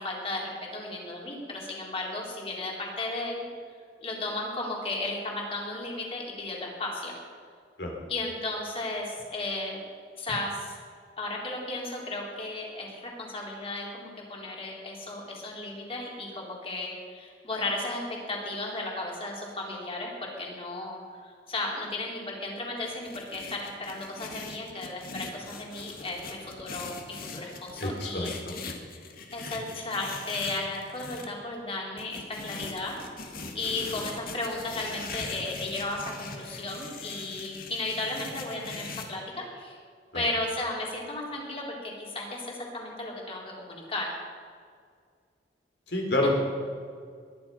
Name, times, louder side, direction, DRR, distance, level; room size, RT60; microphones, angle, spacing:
voice 1, 0.0-3.4 4.0-7.1 8.1-9.8 10.2-10.8 11.2-28.4 29.3-33.0 33.5-39.8 40.1-44.1 46.2-46.3, left 2 dB, 35° left, -2 dB, 3.9 m, -34 dB
sound 1, 22.8-31.3 32.0-39.1, left 4 dB, 55° left, 2.0 m, -41 dB
voice 2, 27.8-28.7 40.1-40.2 45.9-46.3, left 1 dB, 75° left, 0 dB, 4.0 m, -29 dB
21.5 x 11.0 x 5.7 m, 2.1 s
head